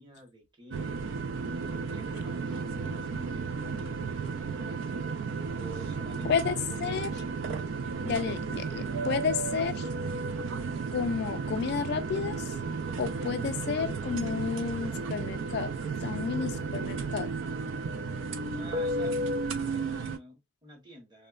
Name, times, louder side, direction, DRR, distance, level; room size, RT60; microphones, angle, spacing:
voice 1, 0.0-5.1 5.6-7.1 18.3-19.2 19.5-21.3, equal, 25° right, 0.8 m, -49 dB
sound 1, 0.7-20.2, right 4 dB, 85° right, 0.3 m, -33 dB
voice 2, 6.8-7.1 8.0-9.9 10.9-12.5 13.0-15.7 16.0-17.3, left 6 dB, 60° left, 0.3 m, -31 dB
3.1 x 2.1 x 2.2 m
head